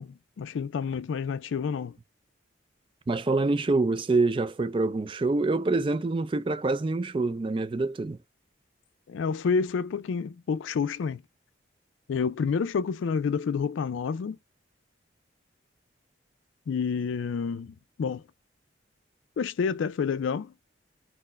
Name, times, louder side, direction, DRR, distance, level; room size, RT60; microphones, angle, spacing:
voice 1, 0.0-2.0 9.1-11.2 12.1-14.4 16.7-18.2 19.4-20.5, left 5 dB, 75° left, 0.3 m, -29 dB
voice 2, 3.1-8.2, right 3 dB, 25° right, 0.3 m, -26 dB
4.4 x 2.0 x 4.2 m
head